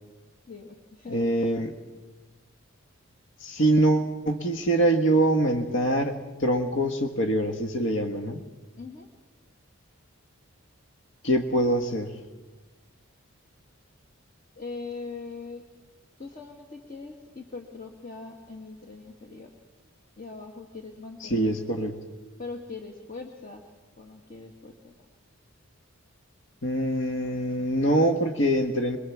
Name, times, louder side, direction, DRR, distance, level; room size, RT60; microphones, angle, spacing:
voice 1, 0.5-1.3 8.8-9.1 14.6-15.6 16.2-19.5 20.2-21.5 22.4-23.6 24.0-24.9, left 4 dB, 40° left, 2 dB, 2.0 m, -41 dB
voice 2, 1.1-1.7 3.4-6.1 6.4-8.4 11.2-12.1 21.2-22.0 26.6-29.0, right 1 dB, 60° left, 6 dB, 1.6 m, -24 dB
25.0 x 23.5 x 7.3 m, 1.2 s
head